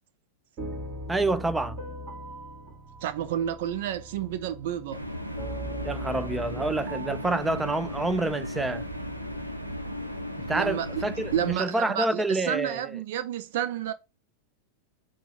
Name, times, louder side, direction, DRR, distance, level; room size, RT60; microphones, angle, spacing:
sound 1, 0.6-10.2, right 2 dB, 35° right, 2.5 m, -41 dB
voice 1, 1.1-1.8 5.8-8.9 10.5-12.9, right 2 dB, 10° right, 0.5 m, -28 dB
voice 2, 3.0-5.0 10.5-11.0 11.3-13.9, right 10 dB, 55° right, 0.7 m, -30 dB
sound 2, 4.9-11.5, left 1 dB, 85° right, 0.9 m, -36 dB
6.9 x 2.4 x 5.6 m
figure-of-eight pair, 90°, 0 cm